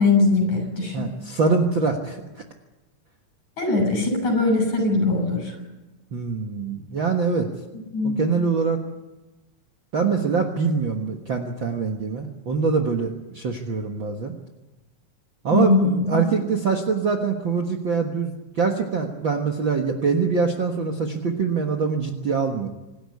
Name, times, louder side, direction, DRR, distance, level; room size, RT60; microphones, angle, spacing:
voice 1, 0.0-1.1 3.6-5.5 7.7-8.2 15.5-16.3, left 3 dB, 55° left, 4 dB, 8.4 m, -21 dB
voice 2, 0.9-2.2 6.1-7.5 8.0-8.8 9.9-14.3 15.4-22.7, right 5 dB, 50° right, 3 dB, 1.6 m, -24 dB
26.5 x 13.0 x 9.8 m, 1.1 s
omnidirectional pair, 3.9 m